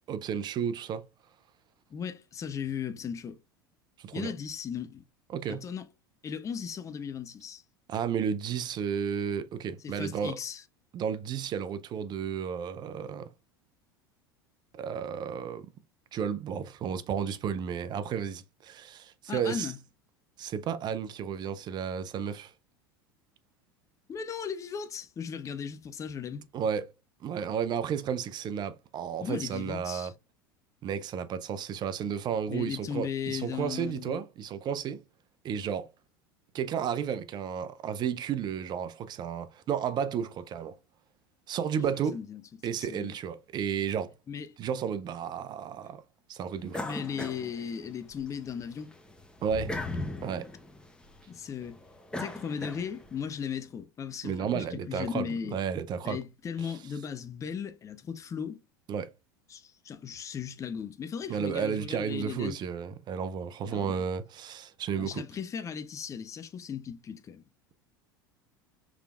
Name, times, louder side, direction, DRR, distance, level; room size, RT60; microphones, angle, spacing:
voice 1, 0.1-1.0 4.0-4.3 5.3-5.6 7.9-10.4 10.9-13.3 14.7-15.7 16.1-19.7 20.4-22.5 26.5-26.9 27.2-30.1 30.8-35.0 35.4-35.9 36.5-40.8 41.5-42.2 42.6-44.1 44.6-46.0 46.3-46.8 49.4-49.7 50.2-50.5 54.2-56.2 58.9-59.1 61.3-65.2, right 7 dB, 35° right, 0.5 m, -32 dB
voice 2, 1.9-3.4 4.1-5.0 5.5-5.9 6.2-7.6 9.8-10.6 19.3-19.8 24.1-26.4 29.2-30.1 32.5-34.2 42.1-43.1 44.3-44.6 46.8-48.9 51.3-51.8 52.2-55.6 56.0-58.6 59.5-62.6 63.6-64.0 65.0-67.4, left 7 dB, 25° left, 0.6 m, -37 dB
sound 1, 46.7-48.3 48.7-53.2, left 2 dB, 5° left, 0.9 m, -38 dB
4.9 x 3.3 x 2.3 m
hypercardioid pair, 80°, 12 cm